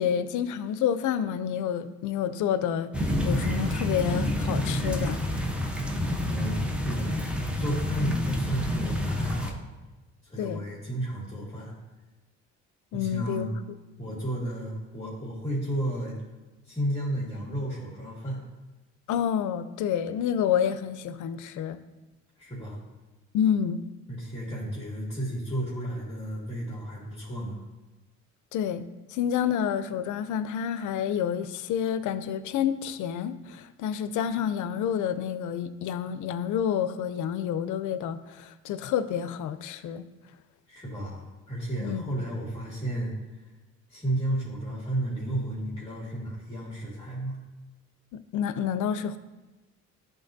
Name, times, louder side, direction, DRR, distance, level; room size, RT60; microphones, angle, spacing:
voice 1, 0.0-2.9 3.2-5.2 10.4-10.6 12.9-13.5 19.1-21.8 23.3-23.8 28.5-40.1 41.8-42.0 48.1-49.2, left 9 dB, 80° left, 12 dB, 0.5 m, -29 dB
sound 1, 2.9-9.5, left 1 dB, 5° right, 0.7 m, -28 dB
voice 2, 6.2-7.1 7.6-9.6 10.2-11.7 12.9-13.5 14.0-16.2 16.6-18.4 22.4-22.8 24.1-27.6 40.7-43.2 43.9-47.4, right 1 dB, 15° left, -8 dB, 2.0 m, -33 dB
11.0 x 3.9 x 2.6 m, 1.1 s
cardioid pair, 90°, 30 cm